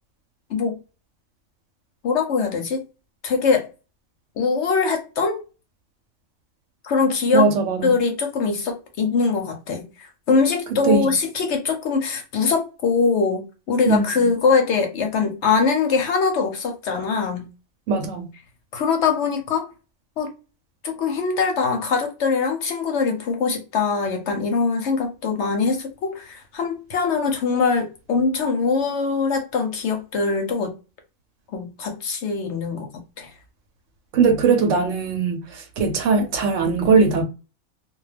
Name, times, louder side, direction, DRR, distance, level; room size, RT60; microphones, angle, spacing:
voice 1, 2.0-2.8 3.2-3.7 4.4-5.4 6.8-7.5 7.8-17.5 18.7-19.7 20.2-20.3 20.8-30.7 31.5-32.9 33.2-33.3, left 5 dB, 65° left, 0.8 m, -22 dB
voice 2, 7.3-7.9 10.8-11.1 13.8-14.3 17.9-18.3 34.1-37.2, right 4 dB, 70° right, 0.9 m, -20 dB
2.2 x 2.2 x 3.2 m
omnidirectional pair, 1.4 m